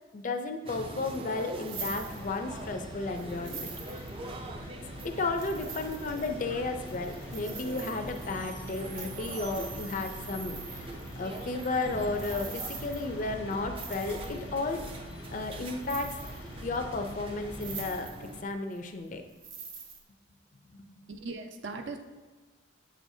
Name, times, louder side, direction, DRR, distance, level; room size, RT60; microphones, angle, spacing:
voice 1, 0.1-4.0 5.0-14.8 15.3-16.2 16.6-19.2 20.7-21.0, left 3 dB, 40° left, 6 dB, 0.4 m, -34 dB
sound 1, 0.6-18.4, right 2 dB, 25° right, 0.4 m, -43 dB
sound 2, 1.4-2.7 3.2-4.5 5.0-14.6 15.1-15.5 15.8-16.8 17.1-17.2 17.5-18.4 18.7-20.0, right 6 dB, 85° right, 1.3 m, -45 dB
sound 3, 1.8-17.9, left 1 dB, 85° left, 0.8 m, -46 dB
voice 2, 21.1-22.0, right 3 dB, 65° right, 4 dB, 0.7 m, -39 dB
7.7 x 6.2 x 2.7 m, 1.3 s
head